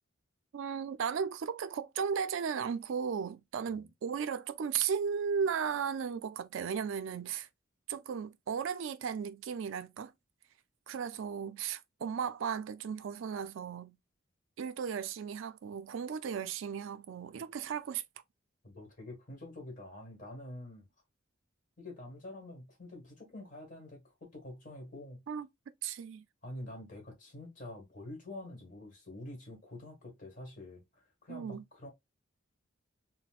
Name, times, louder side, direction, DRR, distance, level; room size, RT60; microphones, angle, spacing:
voice 1, 0.5-7.5 7.9-10.1 10.9-14.0 14.6-18.0 25.3-25.5 25.8-26.2 31.3-31.6, right 7 dB, 70° right, 0.4 m, -35 dB
voice 2, 18.6-20.9 21.8-25.2 26.4-31.9, left 1 dB, 40° left, 1.4 m, -47 dB
4.1 x 2.1 x 2.3 m
head